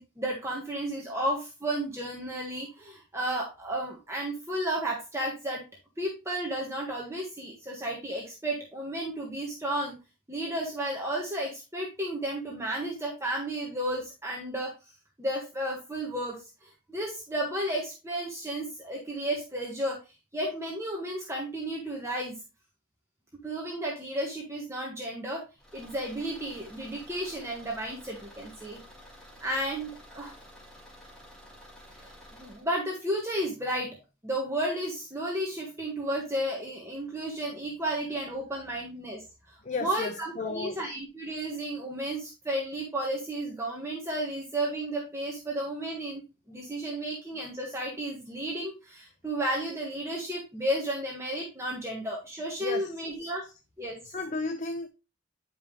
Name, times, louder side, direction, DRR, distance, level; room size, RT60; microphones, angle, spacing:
voice 1, 0.0-5.6 6.0-9.9 10.3-14.7 15.2-16.4 16.6-20.0 20.3-22.4 23.4-25.4 25.7-28.8 29.4-30.3 32.0-34.0 34.2-39.2 39.8-46.2 46.5-53.5 53.8-54.0, right 1 dB, 15° right, 1.5 m, -33 dB
Car / Engine, 25.6-32.7, equal, 5° left, 2.0 m, -51 dB
voice 2, 39.6-40.8 52.6-52.9 53.2-53.5 54.0-54.9, left 3 dB, 35° left, 0.5 m, -34 dB
9.5 x 5.4 x 3.2 m
head